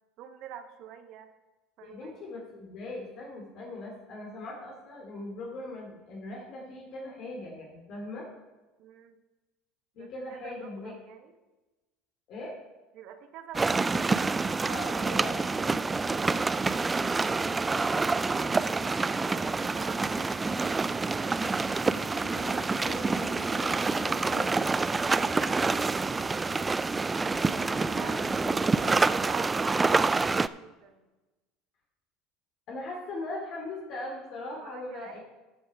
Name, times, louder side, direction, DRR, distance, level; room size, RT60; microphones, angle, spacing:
voice 1, 0.2-1.3 1.8-2.3 8.8-9.2 10.0-11.3 12.9-18.7 19.2-21.4 25.2-26.6 27.8-31.1 34.5-35.2, right 8 dB, 60° right, 8 dB, 1.2 m, -48 dB
voice 2, 1.8-8.3 9.9-10.9 12.3-12.5 14.7-15.4 21.7-24.6 27.3-28.5 32.7-35.2, left 2 dB, 55° left, -1 dB, 2.6 m, -40 dB
sound 1, 13.5-30.5, right 3 dB, 20° right, 0.3 m, -27 dB
13.5 x 6.2 x 4.8 m, 1.1 s
hypercardioid pair, 85°, 0 cm